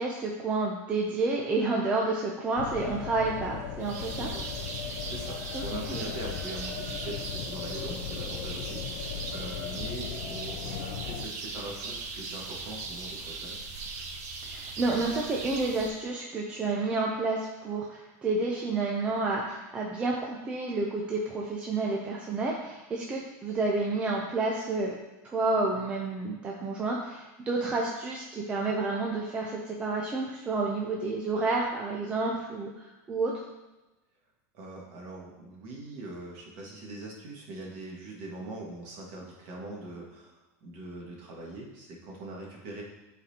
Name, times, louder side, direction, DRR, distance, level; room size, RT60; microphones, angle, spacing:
voice 1, 0.0-4.3 5.5-5.6 5.9-6.0 14.4-24.9 25.2-33.4, right 3 dB, 15° right, -2 dB, 0.4 m, -30 dB
sound 1, 2.6-11.3, left 9 dB, 50° left, 0.4 m, -38 dB
sound 2, 3.8-15.9, right 3 dB, 80° right, 1.1 m, -39 dB
voice 2, 4.2-4.5 4.8-13.6 34.5-42.8, right 2 dB, 40° right, -2 dB, 1.6 m, -42 dB
11.5 x 4.1 x 2.8 m, 1.1 s
supercardioid pair, 180°, 9 cm